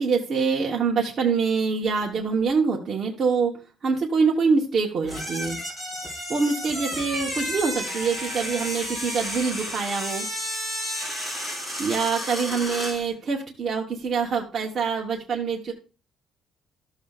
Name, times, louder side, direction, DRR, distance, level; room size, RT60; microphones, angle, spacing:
voice 1, 0.0-5.6 6.3-10.3 11.8-15.7, right 5 dB, 35° right, -1 dB, 1.0 m, -25 dB
sound 1, 5.0-13.0, equal, 10° left, 3.4 m, -32 dB
13.0 x 7.0 x 2.4 m, 0.33 s
cardioid pair, 165°, 0 cm